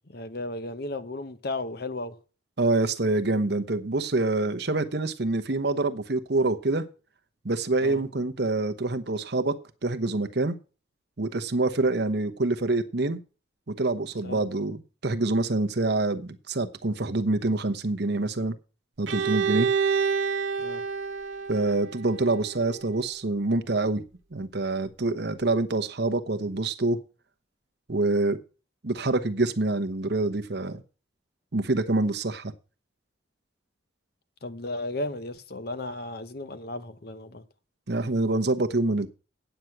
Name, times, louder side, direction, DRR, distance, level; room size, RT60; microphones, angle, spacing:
voice 1, 0.1-2.2 7.8-8.0 14.2-14.4 20.6-20.8 34.4-37.4, left 2 dB, 50° left, 1.0 m, -34 dB
voice 2, 2.6-6.8 7.4-9.5 9.8-10.6 11.2-13.2 13.7-18.6 19.0-19.7 21.5-24.0 24.3-27.0 27.9-28.4 28.8-30.8 31.5-32.5 37.9-39.1, right 2 dB, 60° right, 1.0 m, -26 dB
Bowed string instrument, 19.1-22.9, right 6 dB, 80° right, 1.0 m, -28 dB
9.2 x 8.0 x 5.9 m
head